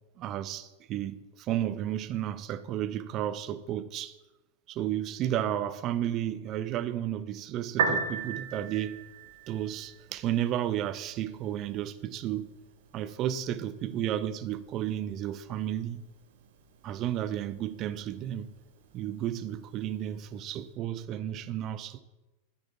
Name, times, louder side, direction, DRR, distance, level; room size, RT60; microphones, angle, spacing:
voice 1, 0.2-4.2 4.7-9.0 9.5-12.5 12.9-16.0 16.8-18.5 18.9-22.0, right 11 dB, 35° right, 0.4 m, -32 dB
Piano, 7.7-20.7, right 5 dB, 55° right, 0.8 m, -40 dB
8.7 x 4.3 x 4.5 m
figure-of-eight pair, 90°, 0 cm